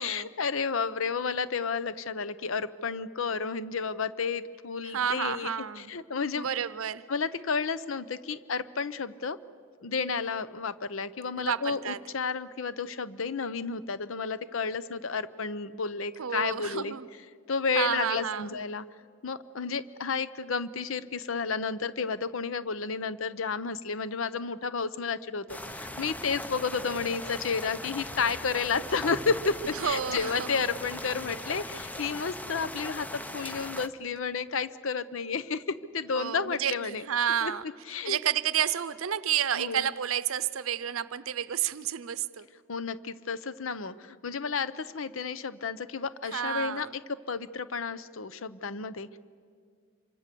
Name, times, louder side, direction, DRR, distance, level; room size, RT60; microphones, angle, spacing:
voice 1, 0.0-5.5 5.8-6.5 7.1-9.4 9.8-16.9 17.5-18.8 19.2-33.1 33.3-37.0 37.4-37.5 37.9-38.2 39.6-39.9 42.7-46.9 47.3-49.2, left 5 dB, 70° left, 15 dB, 0.7 m, -31 dB
voice 2, 4.8-5.9 6.4-7.0 11.4-12.0 16.2-17.1 17.7-18.6 29.7-30.6 36.1-37.6 38.0-42.5 46.2-46.9, right 9 dB, 90° right, 15 dB, 0.6 m, -30 dB
sound 1, 25.5-33.9, left 1 dB, 10° left, 0.8 m, -39 dB
26.5 x 25.0 x 6.8 m, 2.1 s
head